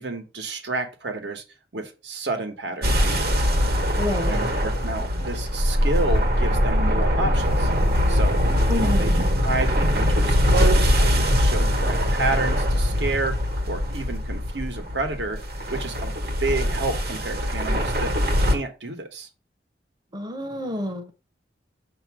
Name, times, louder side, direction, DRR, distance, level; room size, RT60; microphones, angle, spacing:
voice 1, 0.0-1.4 1.7-3.5 4.3-7.7 8.1-8.4 8.7-9.1 9.4-15.4 15.7-16.1 16.4-18.1 18.4-19.3, right 3 dB, 75° right, 1.3 m, -30 dB
sound 1, 2.8-18.6, equal, 60° right, 1.3 m, -22 dB
voice 2, 4.0-4.3 8.7-9.2 20.1-21.1, left 1 dB, 25° right, 0.8 m, -28 dB
7.0 x 2.9 x 5.9 m
head